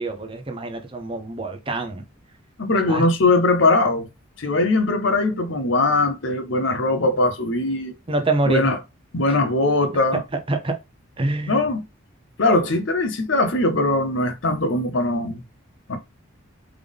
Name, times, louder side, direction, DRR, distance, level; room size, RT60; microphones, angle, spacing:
voice 1, 0.0-2.0 2.9-3.1 8.1-8.7 10.5-10.8 11.2-11.6, right 2 dB, 25° right, 0.6 m, -25 dB
voice 2, 2.6-4.1 4.4-7.9 8.4-8.8 9.1-10.2 11.5-11.8 12.4-15.4 15.9-16.0, left 2 dB, 60° left, 0.7 m, -20 dB
3.6 x 3.4 x 3.5 m
head